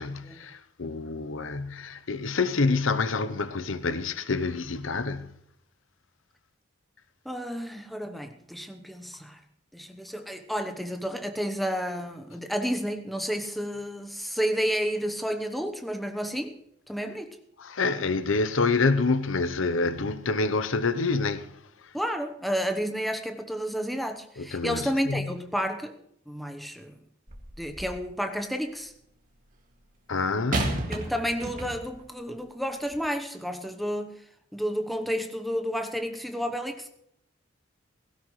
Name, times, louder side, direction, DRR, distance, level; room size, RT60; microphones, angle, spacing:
voice 1, 0.0-5.3 17.6-21.5 24.4-25.3 30.1-30.8, left 3 dB, 85° left, 0.8 m, -27 dB
voice 2, 7.2-9.4 9.7-16.6 16.9-17.4 21.9-26.0 26.3-27.0 27.6-28.9 30.8-34.1 34.5-36.9, equal, ahead, 1.0 m, -31 dB
sound 1, 27.3-28.1 30.5-32.0 32.8-33.0, right 2 dB, 40° right, 2.2 m, -32 dB
17.0 x 16.5 x 3.2 m
head